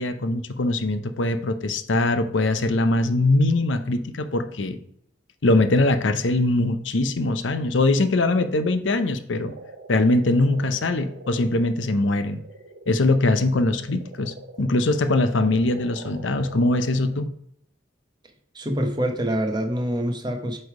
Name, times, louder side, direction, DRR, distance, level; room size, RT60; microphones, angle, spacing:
voice 1, 0.0-4.8 5.4-9.5 9.9-12.4 12.9-17.3, left 2 dB, 75° left, 9 dB, 0.7 m, -22 dB
sound 1, 9.4-17.2, right 2 dB, 55° right, 0.8 m, -44 dB
voice 2, 18.5-20.6, equal, 25° right, 4 dB, 1.0 m, -25 dB
8.0 x 3.4 x 4.8 m, 0.68 s
head